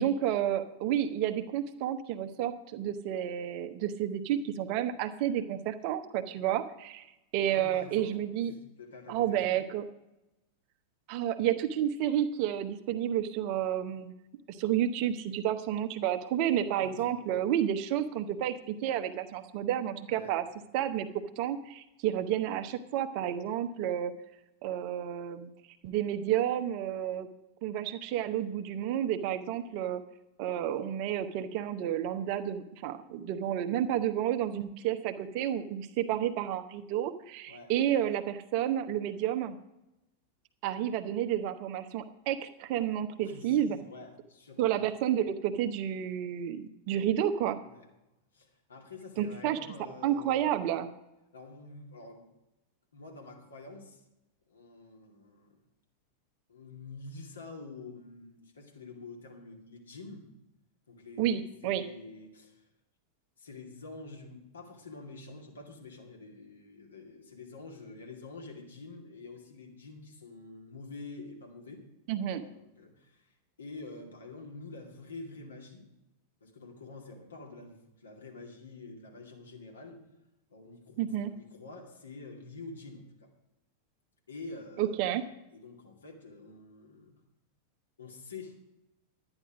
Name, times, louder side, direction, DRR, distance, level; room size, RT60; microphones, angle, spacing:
voice 1, 0.0-7.1 7.3-8.5 9.1-9.8 11.1-14.1 14.5-20.4 20.7-21.1 21.4-24.1 24.6-25.5 25.8-27.3 27.6-30.0 30.4-39.6 40.6-43.8 44.6-47.6 49.2-49.6 50.0-50.9 61.2-61.8 72.1-72.4 81.0-81.3 84.8-85.2, right 10 dB, 45° right, 9 dB, 0.9 m, -30 dB
voice 2, 7.5-8.2 8.4-9.6 16.8-17.2 20.1-20.3 37.5-37.7 43.2-44.8 47.6-47.9 48.3-50.5 51.3-52.2 52.9-54.0 54.5-55.5 56.5-60.3 60.9-62.7 63.4-71.8 72.3-75.8 76.4-80.0 80.5-83.3 84.3-87.1 88.0-88.6, left 3 dB, 70° left, 1 dB, 2.4 m, -47 dB
11.5 x 9.8 x 5.0 m, 0.93 s
figure-of-eight pair, 90°, 0 cm